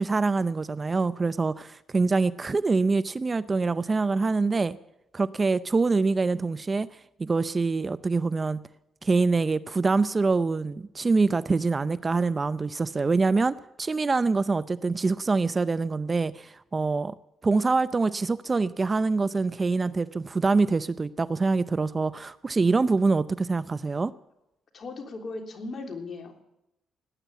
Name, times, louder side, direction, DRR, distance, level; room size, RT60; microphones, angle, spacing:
voice 1, 0.0-4.8 5.1-8.6 9.0-17.1 17.4-24.1, right 3 dB, 30° right, 16 dB, 0.5 m, -25 dB
voice 2, 24.7-26.4, left 3 dB, 45° left, 3 dB, 3.4 m, -37 dB
18.0 x 10.0 x 8.0 m, 0.86 s
cardioid pair, 90°, 0 cm